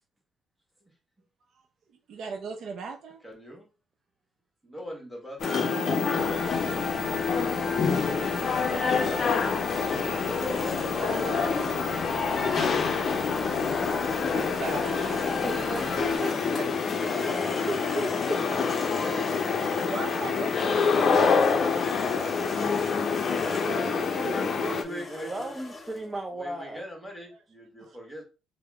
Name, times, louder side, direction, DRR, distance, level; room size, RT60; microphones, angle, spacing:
voice 1, 2.1-3.2 5.5-6.7 8.6-9.1 10.9-12.6 13.9-15.6 16.6-16.7 19.9-21.8 22.0-22.8 27.8-28.0, right 4 dB, 60° right, 5 dB, 0.6 m, -40 dB
voice 2, 3.2-3.7 4.6-5.7 6.6-6.9 8.8-9.2 12.3-12.9 15.4-16.2 17.2-18.6 18.9-19.6 24.2-25.5 26.3-28.2, equal, 5° left, 0 dB, 1.4 m, -41 dB
sound 1, 5.4-24.8, left 5 dB, 45° left, 0.5 m, -26 dB
sound 2, 6.2-16.2, equal, 30° right, 1.3 m, -42 dB
sound 3, 10.2-11.6 13.3-15.9 16.7-23.9 24.8-26.1, left 2 dB, 25° left, 1.1 m, -41 dB
voice 3, 15.2-16.6 16.9-18.4 23.5-26.8, right 2 dB, 15° right, 2 dB, 0.5 m, -37 dB
3.4 x 2.0 x 3.5 m, 0.31 s
cardioid pair, 110°, 0 cm